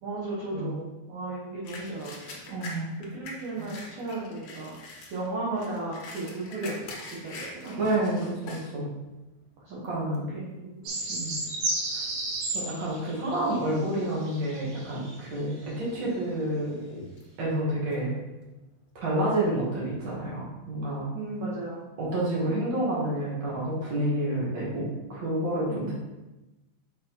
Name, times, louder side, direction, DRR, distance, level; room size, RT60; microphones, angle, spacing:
voice 1, 0.0-2.7 3.1-4.7 5.1-7.8 9.6-10.9 21.1-21.8 25.7-25.9, right 2 dB, 60° right, -6 dB, 2.1 m, -35 dB
sound 1, 1.6-8.7 9.2-9.3 9.8-10.2 10.9-11.1 11.4-12.6 12.9-13.4 13.8-13.9 14.8-15.4 15.7-18.8, left 2 dB, 85° left, 1.3 m, -44 dB
voice 2, 2.5-2.9 3.6-3.7 7.8-8.9 9.8-10.3 11.1-11.3 11.9-12.0 12.5-16.8 17.4-18.1 19.0-21.1 22.0-25.9, right 1 dB, 35° right, -6 dB, 2.3 m, -29 dB
sound 2, 10.8-15.2 15.7-15.8, right 2 dB, 85° right, 3.8 m, -33 dB
7.2 x 5.1 x 4.5 m, 1.0 s
omnidirectional pair, 5.1 m